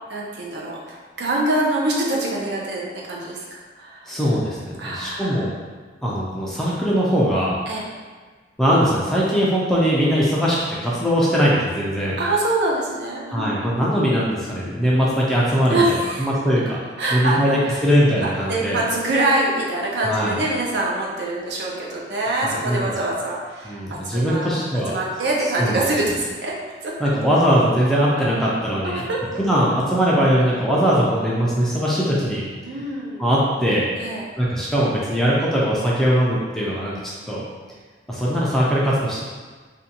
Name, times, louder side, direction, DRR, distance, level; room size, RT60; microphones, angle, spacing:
voice 1, 0.1-4.2 4.8-5.5 7.7-7.8 12.2-13.6 14.9-15.0 15.7-16.3 17.0-17.8 18.2-24.6 24.9-26.5 26.8-27.1 28.1-28.3 28.8-29.3 30.7-30.8 32.6-33.2 34.0-34.2, right 2 dB, 65° right, -3 dB, 0.5 m, -25 dB
voice 2, 4.1-5.5 6.0-7.5 8.6-10.6 10.8-12.2 13.3-16.8 17.1-18.8 20.0-20.4 22.4-22.9 23.6-25.0 25.6-25.8 27.0-29.0 29.4-32.4 33.2-33.9 34.4-36.9 37.3-37.4 38.1-39.2, equal, ahead, -7 dB, 0.3 m, -20 dB
2.5 x 2.2 x 2.7 m, 1.4 s
head